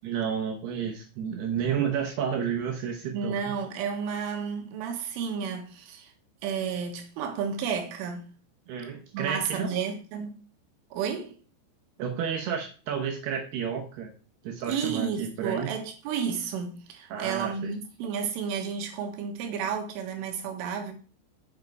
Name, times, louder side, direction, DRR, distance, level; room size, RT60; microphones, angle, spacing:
voice 1, 0.0-3.6 8.7-9.8 12.0-14.1 14.4-15.7 17.1-17.7, right 7 dB, 75° right, 2.6 m, -31 dB
voice 2, 3.1-6.1 6.4-8.3 9.1-10.5 10.9-11.4 14.7-20.9, right 6 dB, 90° right, 3.9 m, -32 dB
7.5 x 6.7 x 4.6 m
omnidirectional pair, 5.5 m